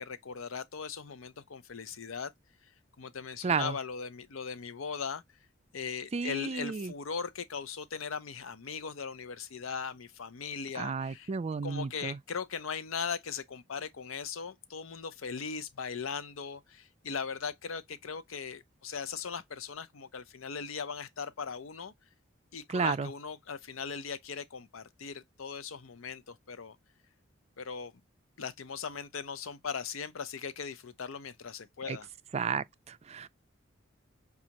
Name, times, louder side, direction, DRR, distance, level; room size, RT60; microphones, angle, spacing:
voice 1, 0.0-2.3 3.0-5.2 5.7-11.3 11.6-21.9 22.5-26.8 27.6-27.9 28.4-32.1, left 6 dB, 85° left, 0.6 m, -39 dB
voice 2, 3.4-3.8 6.1-6.9 10.7-12.2 22.7-23.1 31.9-32.0 32.3-33.3, right 5 dB, 35° right, 0.4 m, -32 dB
6.1 x 2.4 x 2.8 m
head